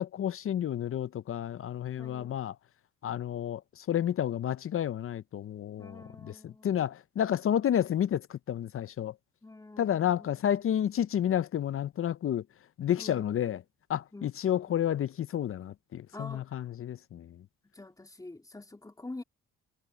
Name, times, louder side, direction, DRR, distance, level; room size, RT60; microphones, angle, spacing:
voice 1, 0.0-2.5 3.0-9.1 9.8-12.4 12.8-13.6 13.9-17.4, left 10 dB, 45° left, 0.6 m, -30 dB
voice 2, 2.0-2.3 5.8-6.9 9.4-10.4 13.0-13.3 14.1-14.9 16.1-16.6 17.6-19.2, left 2 dB, 10° left, 2.7 m, -47 dB
cardioid pair, 90°, 30 cm